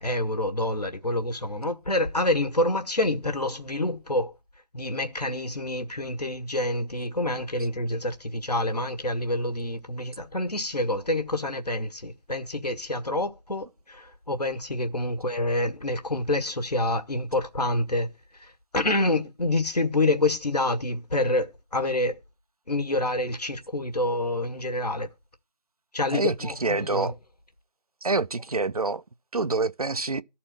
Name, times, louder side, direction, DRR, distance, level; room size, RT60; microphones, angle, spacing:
voice 1, 0.0-4.3 4.7-18.1 18.4-22.2 22.7-25.1 25.9-27.1, left 1 dB, 70° left, 1.6 m, -27 dB
voice 2, 26.6-27.1 28.0-29.0 29.3-30.2, right 3 dB, 60° right, 0.6 m, -26 dB
13.0 x 4.3 x 7.6 m
figure-of-eight pair, 165°, 21 cm